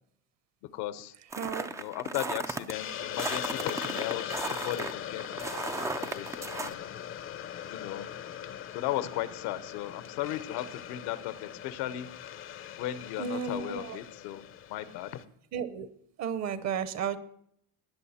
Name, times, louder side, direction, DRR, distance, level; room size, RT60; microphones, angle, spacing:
voice 1, 0.7-1.1 1.7-4.4 4.6-5.2 5.6-6.9 7.7-8.1 8.7-12.1 12.8-14.4 14.7-15.2, left 13 dB, 75° left, 14 dB, 1.0 m, -36 dB
sound 1, 1.3-2.7 3.2-6.7, right 3 dB, 10° right, 0.3 m, -35 dB
voice 2, 1.4-1.7 13.2-14.0 15.5-15.9 16.2-17.2, right 7 dB, 45° right, 14 dB, 0.9 m, -33 dB
Hiss, 2.7-15.2, left 10 dB, 35° left, 0.6 m, -40 dB
19.5 x 6.5 x 4.3 m, 0.69 s
cardioid pair, 150°, 39 cm